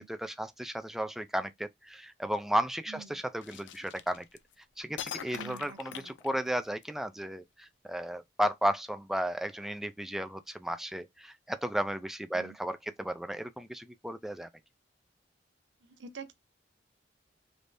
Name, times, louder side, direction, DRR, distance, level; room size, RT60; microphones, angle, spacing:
voice 1, 0.0-4.3 4.8-14.5, equal, ahead, 0.3 m, -34 dB
voice 2, 2.9-3.2 5.3-6.1 12.3-12.5 15.9-16.3, right 5 dB, 85° right, 0.7 m, -47 dB
sound 1, 3.4-4.5 5.0-6.8, left 9 dB, 80° left, 0.4 m, -42 dB
3.4 x 3.1 x 2.5 m
head